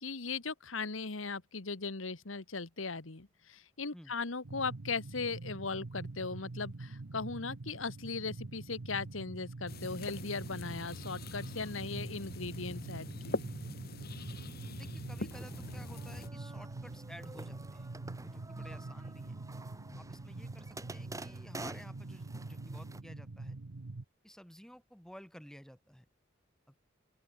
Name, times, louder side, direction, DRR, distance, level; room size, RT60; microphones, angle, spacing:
voice 1, 0.0-13.4, left 4 dB, 80° left, 1.6 m, -38 dB
sound 1, 4.4-24.0, right 2 dB, 85° right, 0.9 m, -45 dB
sound 2, 9.7-16.3, left 2 dB, 50° left, 2.7 m, -43 dB
voice 2, 14.8-19.4 19.9-23.6 24.2-26.1 26.7-26.8, equal, 5° left, 5.2 m, -54 dB
sound 3, 15.3-23.0, right 2 dB, 15° right, 4.2 m, -49 dB
open air
head